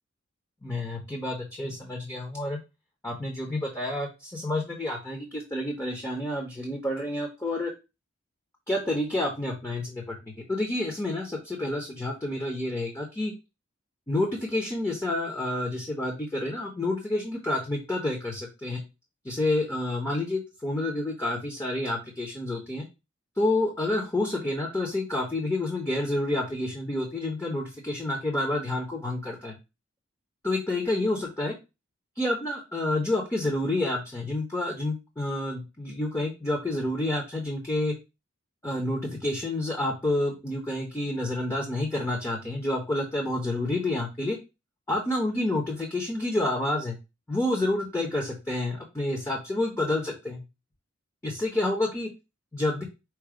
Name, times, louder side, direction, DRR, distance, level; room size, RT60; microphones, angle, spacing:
voice 1, 0.6-2.6 3.0-7.7 8.7-13.3 14.1-18.8 19.2-22.8 23.4-29.6 30.4-31.5 32.2-37.9 38.6-44.4 44.9-47.0 47.3-50.4 51.2-52.1 52.5-52.8, left 1 dB, 15° left, -1 dB, 0.8 m, -29 dB
4.6 x 2.3 x 4.8 m, 0.26 s
head